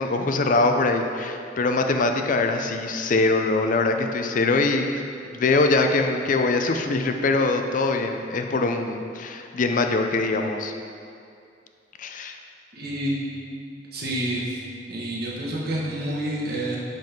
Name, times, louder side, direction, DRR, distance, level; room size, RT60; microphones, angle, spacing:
voice 1, 0.0-5.0 5.3-10.7 12.0-12.4, left 3 dB, 50° left, 5 dB, 0.5 m, -23 dB
voice 2, 12.7-13.1 13.9-14.6 14.9-16.8, right 1 dB, 60° right, -4 dB, 1.3 m, -28 dB
5.5 x 5.3 x 5.9 m, 2.4 s
head